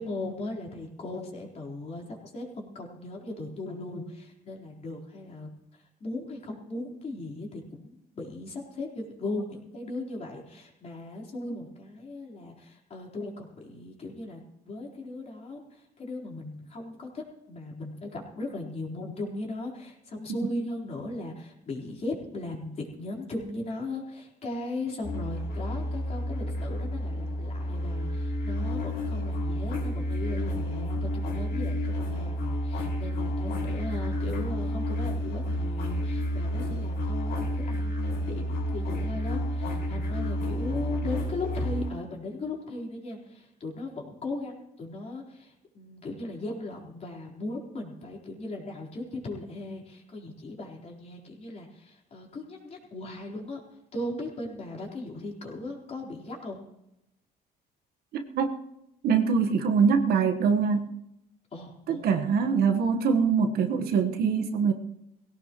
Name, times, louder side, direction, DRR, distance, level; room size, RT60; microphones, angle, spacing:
voice 1, 0.0-5.5 6.0-14.4 14.6-17.2 17.5-53.6 53.9-56.6 61.5-62.0, left 2 dB, 40° left, -2 dB, 4.2 m, -37 dB
sound 1, 25.0-41.9, equal, 75° left, 5.6 m, -30 dB
voice 2, 59.0-60.9 61.9-64.7, right 6 dB, 65° right, 5 dB, 1.4 m, -23 dB
19.5 x 17.0 x 3.1 m, 0.84 s
cardioid pair, 110°, 17 cm